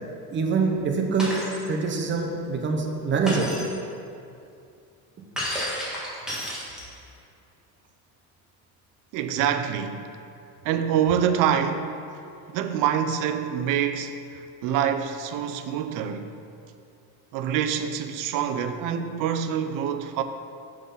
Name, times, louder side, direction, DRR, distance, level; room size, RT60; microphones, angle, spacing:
voice 1, 0.3-1.3 1.6-3.6, right 4 dB, 30° right, 0.8 m, -25 dB
Shatter, 1.2-1.6 3.3-3.7 5.4-7.1, equal, ahead, 1.5 m, -31 dB
voice 2, 9.1-10.0 10.6-12.0 12.5-14.1 14.6-16.3 17.3-20.2, right 8 dB, 60° right, 0.5 m, -25 dB
6.0 x 3.9 x 5.5 m
cardioid pair, 130°, 36 cm